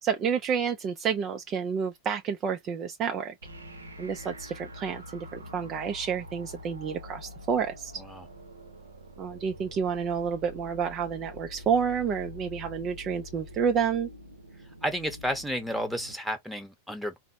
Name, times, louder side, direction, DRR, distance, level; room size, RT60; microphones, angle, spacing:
voice 1, 0.0-3.3 4.0-8.0 9.2-14.1, right 7 dB, 30° right, 0.4 m, -29 dB
sound 1, 3.4-16.2, left 1 dB, 75° right, 0.7 m, -45 dB
voice 2, 14.8-17.2, equal, ahead, 0.9 m, -32 dB
3.9 x 2.0 x 2.6 m
figure-of-eight pair, 90°, 0 cm